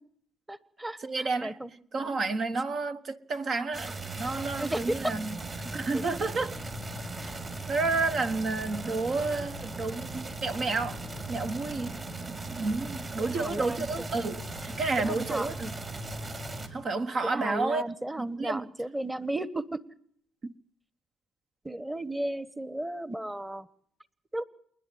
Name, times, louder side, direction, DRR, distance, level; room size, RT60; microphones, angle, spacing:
voice 1, 0.5-1.7 4.6-5.1 5.9-6.0 13.2-14.1 15.0-15.5 17.2-19.8 21.6-23.7 24.3-24.4, right 1 dB, 10° right, 1.3 m, -34 dB
voice 2, 1.0-1.6 1.9-5.3 5.7-6.6 7.2-7.3 7.7-11.0 11.3-12.0 12.6-15.7 16.7-17.8 18.2-18.7 20.4-20.5, right 3 dB, 55° right, 1.2 m, -30 dB
sound 1, 3.7-16.7, right 2 dB, 35° right, 5.7 m, -38 dB
29.0 x 11.0 x 9.3 m
supercardioid pair, 70°, 0 cm